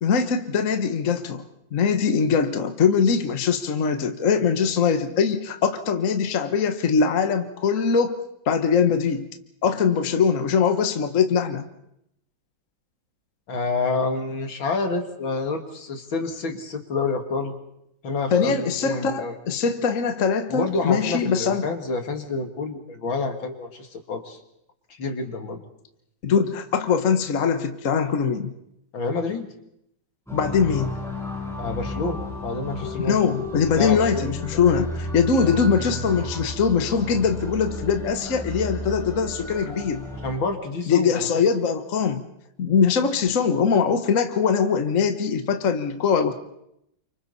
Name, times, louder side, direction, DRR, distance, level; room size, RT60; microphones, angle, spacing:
voice 1, 0.0-1.4 1.7-8.2 8.5-9.3 9.6-11.6 18.3-21.7 26.2-28.5 30.3-31.0 33.1-40.0 40.9-42.2 42.6-46.3, left 6 dB, 45° left, 7 dB, 1.5 m, -22 dB
voice 2, 13.5-17.5 18.0-19.4 20.5-24.4 24.9-25.6 28.9-29.5 31.6-33.2 33.7-34.3 35.4-35.6 40.2-41.4, left 3 dB, 75° left, 4 dB, 2.9 m, -28 dB
sound 1, 30.3-40.4, left 1 dB, ahead, 7.9 m, -33 dB
29.5 x 25.5 x 4.2 m, 0.78 s
omnidirectional pair, 2.2 m